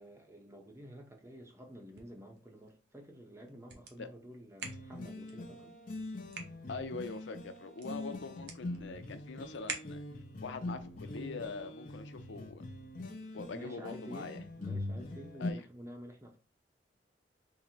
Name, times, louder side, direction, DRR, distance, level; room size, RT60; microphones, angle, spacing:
voice 1, 0.0-5.7 13.5-16.4, equal, 15° right, 0.7 m, -50 dB
sound 1, 1.7-10.4, right 5 dB, 65° right, 0.8 m, -50 dB
sound 2, 4.6-15.5, left 2 dB, 50° left, 0.6 m, -43 dB
voice 2, 6.7-10.0 10.4-12.6 13.3-14.4 15.4-15.7, left 4 dB, 85° left, 0.5 m, -43 dB
3.7 x 2.0 x 4.3 m
head